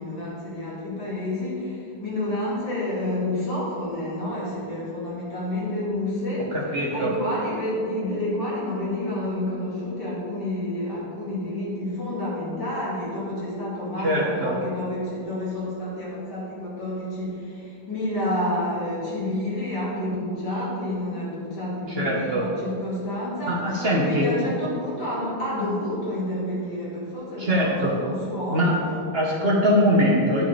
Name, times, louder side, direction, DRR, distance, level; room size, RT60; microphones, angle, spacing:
voice 1, 0.0-6.5 6.9-29.3, left 1 dB, 60° left, -8 dB, 3.0 m, -29 dB
voice 2, 6.5-7.1 14.0-14.5 21.9-22.4 23.4-24.3 27.4-28.0 28.5-28.8 29.1-30.4, equal, 35° right, -4 dB, 1.5 m, -22 dB
11.0 x 6.7 x 3.5 m, 2.5 s
omnidirectional pair, 2.1 m